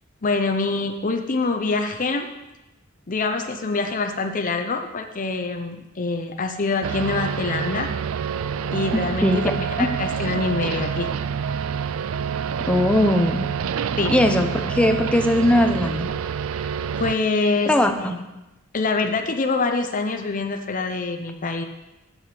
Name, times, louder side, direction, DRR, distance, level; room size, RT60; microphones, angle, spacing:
voice 1, 0.2-2.3 3.1-7.9 8.7-9.5 9.8-11.1 14.0-14.1 16.6-16.7 17.0-18.1 18.7-21.6, left 3 dB, 40° left, 5 dB, 0.7 m, -25 dB
sound 1, 6.8-17.1, right 7 dB, 75° right, 0.4 m, -27 dB
voice 2, 8.9-9.5 9.8-9.9 12.7-13.5 14.1-16.1 17.7-18.2, left 1 dB, 5° left, 5 dB, 0.7 m, -20 dB
7.6 x 7.2 x 6.7 m, 1.0 s
head